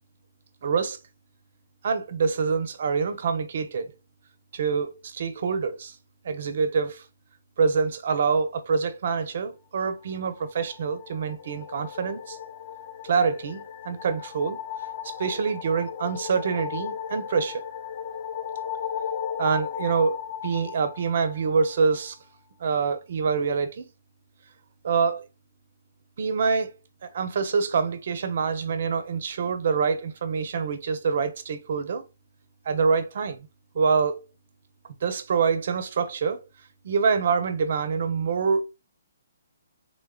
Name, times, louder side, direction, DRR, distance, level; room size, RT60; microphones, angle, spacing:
voice 1, 0.6-1.0 1.8-3.9 4.5-5.9 6.2-7.0 7.6-12.4 13.0-14.6 15.0-17.7 19.4-22.2 22.6-23.8 24.8-25.3 26.2-26.7 27.0-32.0 32.6-33.4 33.7-34.2 35.0-36.4 36.8-38.7, right 5 dB, 60° right, 0.8 m, -26 dB
sound 1, 10.3-21.8, left 8 dB, 40° left, 0.5 m, -36 dB
3.8 x 3.7 x 2.4 m
hypercardioid pair, 150°, 0 cm